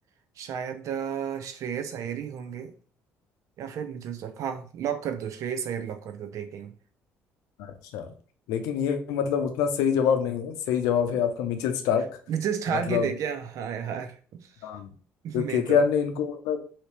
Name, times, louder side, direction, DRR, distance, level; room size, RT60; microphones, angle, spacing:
voice 1, 0.4-2.7 3.6-6.7 12.3-14.5 15.2-15.8, right 8 dB, 60° right, 8 dB, 0.5 m, -32 dB
voice 2, 7.6-8.1 8.5-12.1 12.9-13.1 14.6-14.9 15.3-16.6, left 7 dB, 75° left, 6 dB, 0.5 m, -25 dB
2.8 x 2.8 x 3.2 m, 0.42 s
hypercardioid pair, 60°, 6 cm